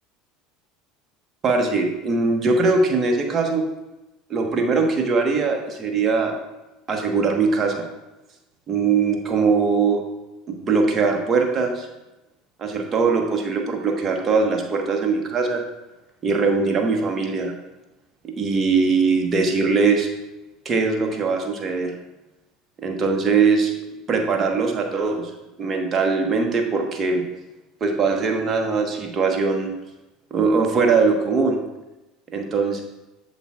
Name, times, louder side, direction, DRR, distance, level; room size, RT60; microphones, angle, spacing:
voice 1, 1.4-3.6 4.3-6.3 6.9-7.8 8.7-10.0 10.5-11.9 12.6-15.6 16.2-17.5 18.2-20.1 20.6-21.9 22.8-23.7 24.1-25.3 25.6-27.2 27.8-29.7 30.3-31.6 32.3-32.8, right 4 dB, 35° right, 2 dB, 1.3 m, -21 dB
7.9 x 7.2 x 2.4 m, 1.0 s
hypercardioid pair, 75°, 0 cm